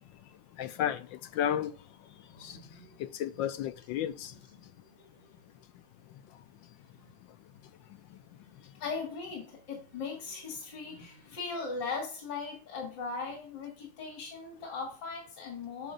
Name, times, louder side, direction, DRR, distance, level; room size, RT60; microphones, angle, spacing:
voice 1, 0.6-1.0 1.3-1.7 2.4-2.6 3.0-4.3, left 10 dB, 75° left, 1.2 m, -32 dB
voice 2, 2.3-3.6 4.2-5.4 8.4-15.9, left 4 dB, 55° left, 3.1 m, -40 dB
10.0 x 6.5 x 2.5 m
omnidirectional pair, 2.2 m